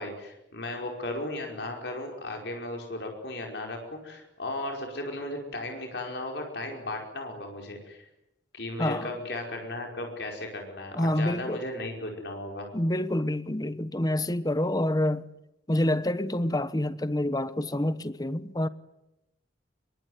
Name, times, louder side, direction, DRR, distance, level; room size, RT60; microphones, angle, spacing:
voice 1, 0.0-8.1 8.5-12.7, left 1 dB, 65° left, 5.0 m, -36 dB
voice 2, 8.8-9.1 10.9-11.7 12.7-15.3 15.7-18.7, left 1 dB, 20° left, 1.1 m, -27 dB
27.0 x 23.0 x 9.4 m
head